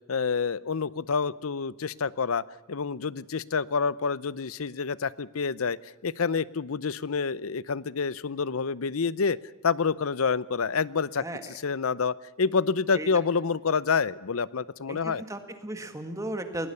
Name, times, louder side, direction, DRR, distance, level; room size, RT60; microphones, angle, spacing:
voice 1, 0.1-2.4 2.7-5.8 6.0-9.4 9.6-11.2 11.6-15.2, left 5 dB, 85° left, 19 dB, 0.7 m, -28 dB
voice 2, 11.2-11.6 12.9-13.1 14.9-16.7, right 1 dB, 15° right, 7 dB, 1.8 m, -35 dB
21.0 x 19.0 x 7.0 m, 1.2 s
head